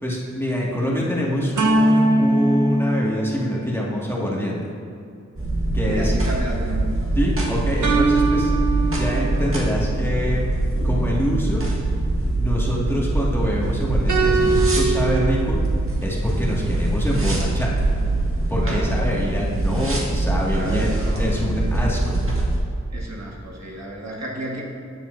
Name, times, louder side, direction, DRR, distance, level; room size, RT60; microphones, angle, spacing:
voice 1, 0.0-4.7 5.7-6.1 7.2-8.5 8.9-10.4 10.8-11.7 12.4-15.6 16.0-17.8 18.5-22.2, equal, 10° left, -5 dB, 2.0 m, -25 dB
sound 1, 1.6-4.1 7.8-9.6 14.1-15.5, right 2 dB, 80° right, 0.9 m, -21 dB
sound 2, 5.4-22.6, right 2 dB, 45° right, 1.7 m, -23 dB
voice 2, 5.9-6.9 7.7-7.8 18.6-18.9 20.5-21.4 22.9-24.6, equal, 60° right, -4 dB, 1.8 m, -32 dB
13.0 x 7.5 x 2.7 m, 2.5 s
cardioid pair, 45°, 29 cm